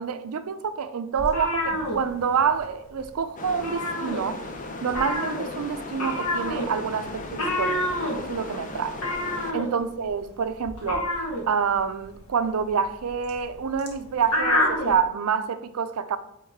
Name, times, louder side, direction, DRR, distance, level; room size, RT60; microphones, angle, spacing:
voice 1, 0.0-4.4 4.8-9.0 9.5-11.1 11.5-16.2, right 6 dB, 80° right, 0.5 m, -27 dB
sound 1, 1.2-2.7 2.9-3.2 3.5-4.6 4.9-15.0, left 1 dB, 80° left, 1.4 m, -28 dB
sound 2, 3.4-9.5, left 2 dB, 35° left, 0.6 m, -37 dB
8.4 x 3.6 x 3.6 m
head